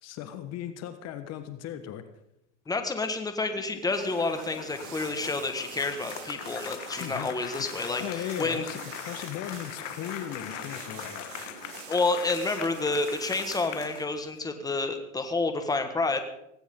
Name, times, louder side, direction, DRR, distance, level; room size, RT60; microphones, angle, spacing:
voice 1, 0.0-2.0 7.0-7.7 8.0-11.3, left 10 dB, 45° left, 10 dB, 1.4 m, -37 dB
voice 2, 2.7-8.6 11.9-16.2, left 3 dB, 10° left, 7 dB, 1.7 m, -29 dB
sound 1, 3.4-14.4, left 14 dB, 75° left, 1.2 m, -42 dB
sound 2, 3.9-14.0, right 8 dB, 60° right, 3.5 m, -45 dB
18.0 x 17.0 x 3.8 m, 0.80 s
hypercardioid pair, 115°, 37 cm